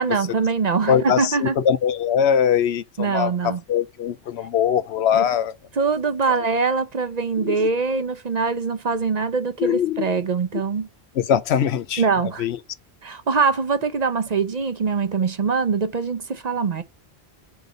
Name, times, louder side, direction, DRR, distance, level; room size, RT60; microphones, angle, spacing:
voice 1, 0.0-1.5 3.0-3.6 5.1-5.2 5.8-10.9 12.0-12.5 13.0-16.8, right 5 dB, 45° right, 0.7 m, -23 dB
voice 2, 0.9-5.5 7.4-7.7 9.6-10.1 11.1-12.0 12.4-12.6, left 8 dB, 90° left, 0.9 m, -22 dB
4.7 x 4.0 x 5.0 m
omnidirectional pair, 1.1 m